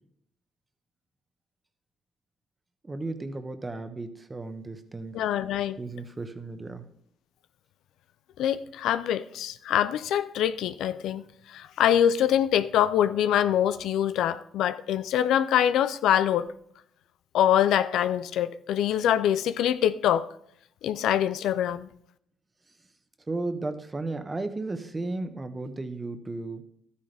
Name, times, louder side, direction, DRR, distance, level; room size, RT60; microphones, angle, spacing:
voice 1, 2.8-5.2 5.8-6.9 23.3-26.6, right 2 dB, 25° right, 1.2 m, -34 dB
voice 2, 5.1-5.8 8.4-16.5 17.3-20.3 20.8-21.9, left 10 dB, 75° left, 0.4 m, -24 dB
12.5 x 9.9 x 3.4 m
supercardioid pair, 65°, 0 cm